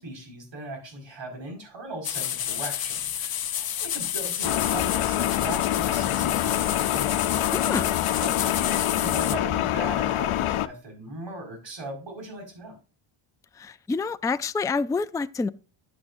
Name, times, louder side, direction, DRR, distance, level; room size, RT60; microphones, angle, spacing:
voice 1, 0.0-7.1 8.2-12.8, right 2 dB, 60° right, 5.2 m, -39 dB
sound 1, 2.0-9.4, left 10 dB, 50° left, 0.8 m, -30 dB
sound 2, 4.4-10.7, left 13 dB, 85° left, 0.7 m, -25 dB
voice 2, 7.5-7.9 13.6-15.5, left 4 dB, 10° left, 0.3 m, -27 dB
10.5 x 8.7 x 2.6 m
cardioid pair, 95°, 48 cm